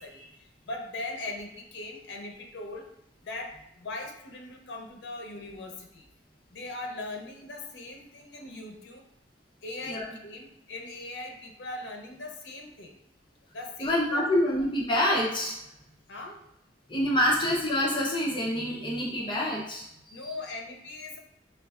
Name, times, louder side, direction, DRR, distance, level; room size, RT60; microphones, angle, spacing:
voice 1, 0.0-2.9 3.2-6.1 6.5-9.0 9.6-13.0 13.5-14.2 16.1-16.4 20.1-21.2, left 2 dB, 80° left, 2 dB, 0.5 m, -40 dB
voice 2, 13.8-15.6 16.9-20.3, left 1 dB, 30° left, -4 dB, 0.5 m, -27 dB
4.4 x 2.3 x 2.3 m, 0.82 s
head